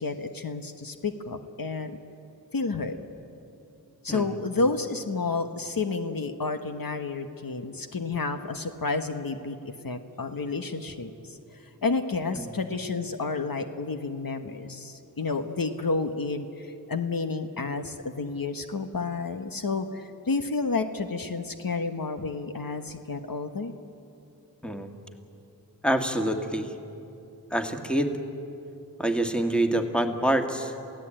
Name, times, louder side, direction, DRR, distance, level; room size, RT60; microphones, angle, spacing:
voice 1, 0.0-2.0 2.5-3.0 4.0-9.6 9.8-11.4 11.8-23.7, left 3 dB, 65° left, 6 dB, 1.3 m, -30 dB
voice 2, 25.8-26.7 27.5-28.1 29.0-30.7, right 1 dB, 5° left, 5 dB, 1.9 m, -26 dB
28.0 x 16.5 x 8.9 m, 2.8 s
wide cardioid pair, 55°, 37 cm